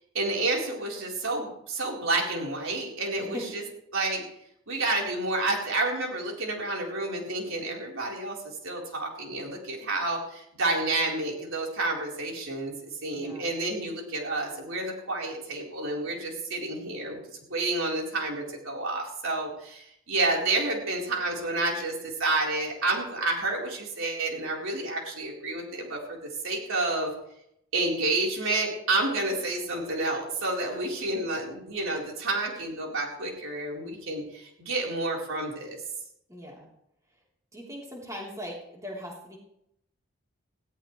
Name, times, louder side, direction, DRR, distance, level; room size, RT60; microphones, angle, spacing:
voice 1, 0.1-3.6 3.9-4.2 4.7-8.4 8.6-17.2 17.5-26.2 26.4-27.1 27.7-35.8, right 2 dB, 75° right, -1 dB, 4.3 m, -29 dB
voice 2, 13.1-13.5 36.3-36.7 37.5-39.4, equal, 15° right, -3 dB, 3.7 m, -39 dB
19.0 x 17.0 x 3.3 m, 0.76 s
head